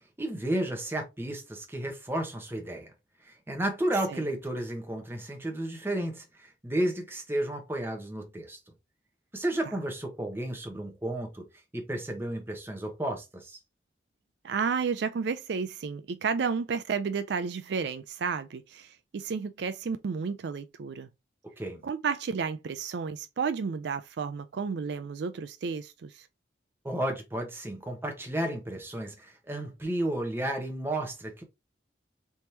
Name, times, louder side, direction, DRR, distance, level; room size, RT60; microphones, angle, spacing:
voice 1, 0.2-2.9 3.2-8.6 9.3-11.5 11.7-13.6 21.6-21.8 26.8-31.4, right 1 dB, 15° right, 0.9 m, -32 dB
voice 2, 14.4-21.1 21.8-26.3, right 5 dB, 65° right, 0.4 m, -32 dB
3.5 x 3.0 x 2.7 m
head